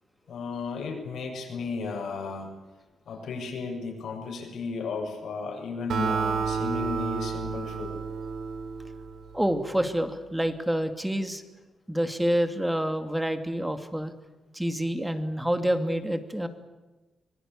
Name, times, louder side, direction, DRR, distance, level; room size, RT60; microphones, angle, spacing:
voice 1, 0.3-2.5 3.1-8.0, left 4 dB, 75° left, 4 dB, 7.4 m, -34 dB
Acoustic guitar, 5.9-9.5, right 5 dB, 80° right, 4.1 m, -30 dB
voice 2, 9.3-11.4 11.9-14.1 14.5-16.5, equal, 5° right, 8 dB, 2.6 m, -27 dB
25.5 x 20.5 x 8.6 m, 1.1 s
cardioid pair, 105°, 0 cm